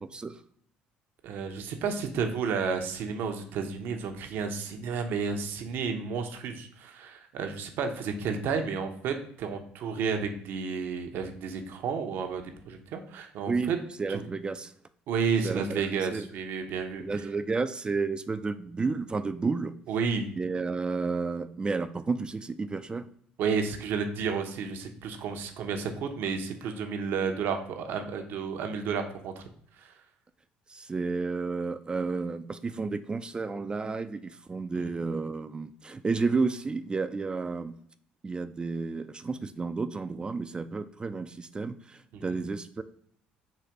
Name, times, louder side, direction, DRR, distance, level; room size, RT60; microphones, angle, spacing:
voice 1, 1.2-13.8 14.1-14.3 15.1-17.2 19.9-20.3 23.4-29.4 29.8-29.9 34.7-35.0 42.1-42.4, right 5 dB, 70° right, 6 dB, 0.7 m, -31 dB
voice 2, 14.0-14.7 15.4-15.8 16.1-16.3 17.0-19.7 20.4-23.1 30.7-37.7 38.2-42.8, right 4 dB, 25° right, 11 dB, 0.3 m, -31 dB
4.0 x 2.8 x 4.6 m, 0.64 s
supercardioid pair, 75°, 4 cm